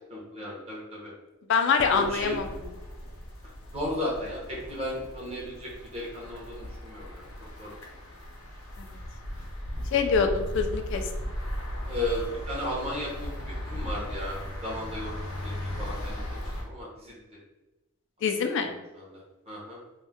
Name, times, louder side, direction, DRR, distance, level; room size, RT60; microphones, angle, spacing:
voice 1, 0.1-1.1 1.9-2.4 3.7-7.3 7.6-7.8 11.9-17.1 18.4-19.2 19.5-19.8, left 1 dB, 30° right, -4 dB, 0.9 m, -35 dB
voice 2, 1.5-2.5 8.8-8.9 9.9-11.0 18.2-18.7, left 5 dB, 60° left, 6 dB, 0.3 m, -25 dB
sound 1, 1.8-16.6, equal, 85° left, 0.7 m, -37 dB
2.6 x 2.1 x 3.3 m, 1.0 s
head